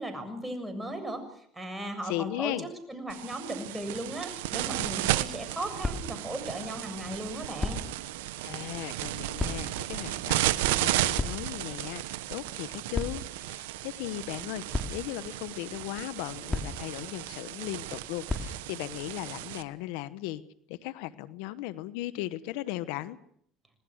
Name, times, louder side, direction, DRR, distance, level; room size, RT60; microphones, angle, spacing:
voice 1, 0.0-2.6 2.9-7.8, right 1 dB, 10° right, 6 dB, 7.2 m, -37 dB
voice 2, 2.0-2.7 8.4-14.6 14.9-20.4 20.7-23.2, left 15 dB, 80° left, 15 dB, 1.0 m, -37 dB
sound 1, 3.1-19.6, right 15 dB, 90° right, 1.1 m, -34 dB
sound 2, 4.6-19.1, left 2 dB, 15° left, 3.3 m, -40 dB
27.5 x 19.0 x 6.4 m, 0.66 s
supercardioid pair, 95°, 0 cm